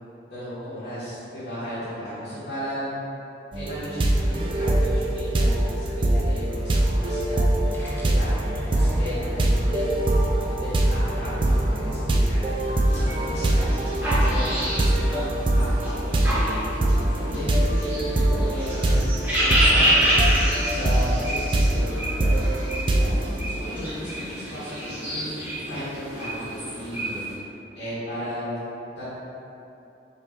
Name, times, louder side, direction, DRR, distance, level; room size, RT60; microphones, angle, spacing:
voice 1, 0.3-3.0 3.5-7.5 8.0-8.3 8.7-10.0 10.4-13.7 14.1-16.7 17.1-19.1 19.4-20.2 20.6-22.4 22.8-23.1 23.4-27.3 27.7-28.6 29.0-29.1, equal, 75° left, -14 dB, 1.4 m, -35 dB
sound 1, 3.5-23.4, right 1 dB, 30° right, 0.3 m, -23 dB
sound 2, 7.5-13.4, equal, 10° left, 0.6 m, -38 dB
sound 3, 12.9-27.4, equal, 10° right, 1.0 m, -28 dB
5.2 x 3.0 x 2.8 m, 2.7 s
head